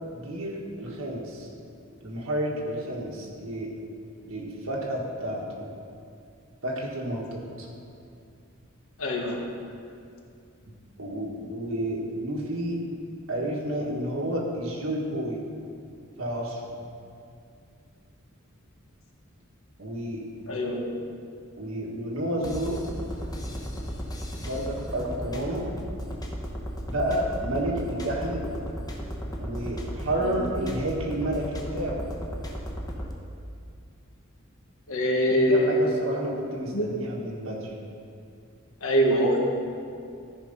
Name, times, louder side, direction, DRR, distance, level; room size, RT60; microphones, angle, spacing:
voice 1, 0.0-1.5 2.0-3.7 4.3-5.7 6.6-7.7 11.0-12.9 13.3-15.5 16.2-16.7 19.8-20.3 21.6-22.8 24.4-25.7 26.8-28.5 29.4-32.1 35.5-37.7, right 1 dB, 80° right, -2 dB, 1.6 m, -30 dB
voice 2, 9.0-9.4 20.5-20.8 34.9-35.9 36.7-36.9 38.8-39.4, equal, 85° left, 0 dB, 1.5 m, -23 dB
sound 1, 22.4-33.1, equal, 20° left, 0.9 m, -35 dB
13.5 x 5.1 x 5.3 m, 2.5 s
head